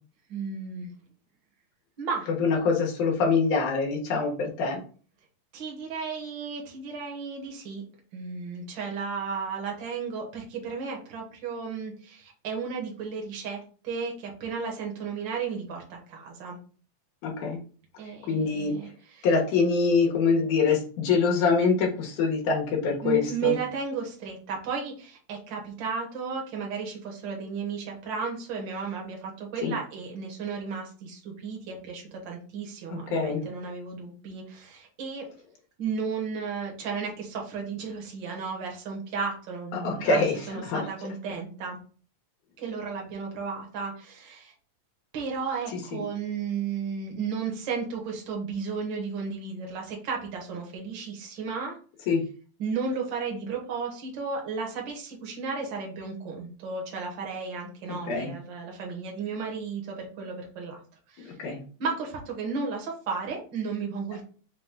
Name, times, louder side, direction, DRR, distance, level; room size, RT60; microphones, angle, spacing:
voice 1, 0.3-0.9 2.0-2.3 5.5-7.8 8.1-16.6 18.0-19.3 23.0-35.3 35.8-41.8 42.6-44.5 45.1-51.8 52.6-60.8 61.1-61.3 61.8-64.2, right 5 dB, 55° right, 0 dB, 1.3 m, -34 dB
voice 2, 2.4-4.8 17.2-17.6 18.3-18.7 19.2-23.5 29.6-29.7 32.9-33.4 39.7-40.3 40.6-40.8 45.9-46.0 52.1-52.2 58.1-58.3 61.4-61.6, left 4 dB, 85° left, -1 dB, 2.6 m, -24 dB
5.9 x 2.2 x 3.6 m, 0.40 s
omnidirectional pair, 3.5 m